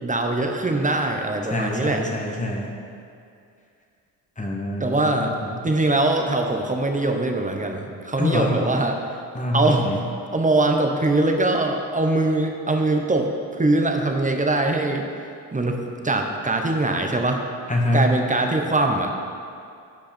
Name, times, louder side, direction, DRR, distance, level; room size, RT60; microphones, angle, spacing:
voice 1, 0.0-2.0 4.8-5.3 5.6-9.0 9.5-9.9 10.3-15.1 15.5-17.4 17.9-19.1, right 2 dB, 15° right, 3 dB, 1.1 m, -22 dB
voice 2, 1.4-2.7 4.4-5.5 8.2-8.6 9.3-10.0 17.7-18.0, left 1 dB, 15° left, 0 dB, 1.6 m, -25 dB
10.5 x 5.3 x 4.5 m, 2.4 s
hypercardioid pair, 50°, 50 cm